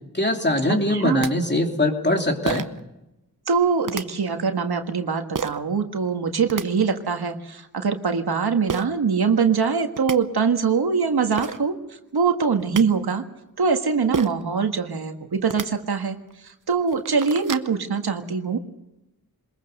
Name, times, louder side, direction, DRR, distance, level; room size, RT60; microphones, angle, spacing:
voice 1, 0.1-2.7, left 1 dB, 30° left, 3 dB, 3.0 m, -22 dB
sound 1, 0.9-1.0 1.2-1.3 2.5-2.8 3.8-4.0 5.3-5.6 6.3-6.6 8.7-8.9 9.6-9.7 10.0-10.2 11.0-11.1 11.4-11.6 12.4-12.8 14.1-14.4 15.4-15.7 16.3-16.4 16.8-17.7, right 6 dB, 55° right, 0.9 m, -29 dB
voice 2, 0.9-1.3 3.5-11.8 12.1-13.2 13.6-16.2 16.4-18.6, right 5 dB, 90° right, 6 dB, 1.7 m, -23 dB
22.5 x 21.5 x 6.6 m, 0.94 s
wide cardioid pair, 75°, 37 cm